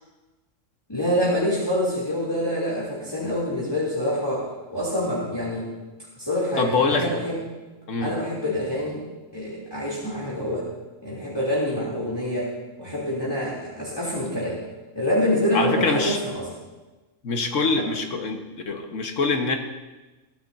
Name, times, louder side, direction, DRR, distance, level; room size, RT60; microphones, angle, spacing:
voice 1, 0.9-4.4 4.7-5.7 6.2-7.4 8.0-9.0 9.3-10.7 11.0-12.5 12.8-14.6 14.9-16.5 17.8-17.9, equal, 20° left, -7 dB, 3.0 m, -26 dB
voice 2, 6.6-7.1 7.9-8.1 15.5-16.2 17.2-18.4 18.7-19.6, left 4 dB, 85° left, 4 dB, 1.7 m, -24 dB
22.5 x 13.0 x 2.7 m, 1.2 s
omnidirectional pair, 1.3 m